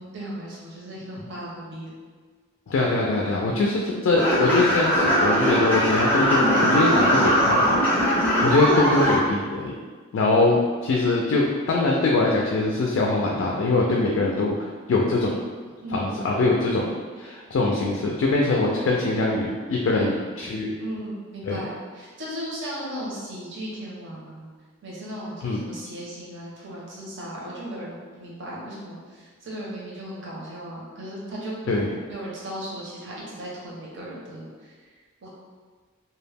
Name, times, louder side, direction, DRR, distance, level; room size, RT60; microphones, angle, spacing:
voice 1, 0.0-1.9 8.6-8.8 15.8-16.5 18.5-18.9 19.9-20.2 20.8-24.5 24.8-31.7 32.1-34.7 35.2-35.3, equal, 60° right, -5 dB, 0.7 m, -36 dB
voice 2, 2.7-7.8 8.4-9.7 10.1-14.5 14.9-15.4 15.9-16.9 17.2-20.7 21.4-21.6 25.4-25.6 31.7-31.9, left 2 dB, 65° left, -2 dB, 0.3 m, -22 dB
sound 1, 4.2-9.1, equal, 10° left, 0.6 m, -20 dB
2.2 x 2.1 x 3.3 m, 1.5 s
head